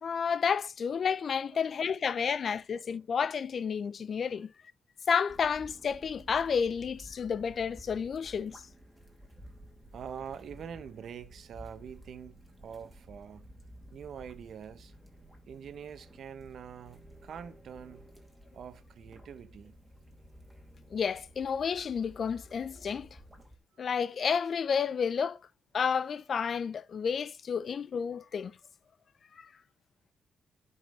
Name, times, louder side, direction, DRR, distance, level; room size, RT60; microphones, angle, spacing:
voice 1, 0.0-4.5 5.1-8.6 20.9-23.1 23.8-25.4 25.7-28.5 29.4-29.5, left 6 dB, 50° left, 0.5 m, -31 dB
voice 2, 2.1-2.6 4.3-4.4 9.9-13.5 13.9-14.9 15.5-18.1 18.5-19.8, right 7 dB, 60° right, 1.1 m, -45 dB
sound 1, 5.3-23.6, equal, 5° right, 2.6 m, -53 dB
10.5 x 5.5 x 3.9 m
cardioid pair, 100°, 0 cm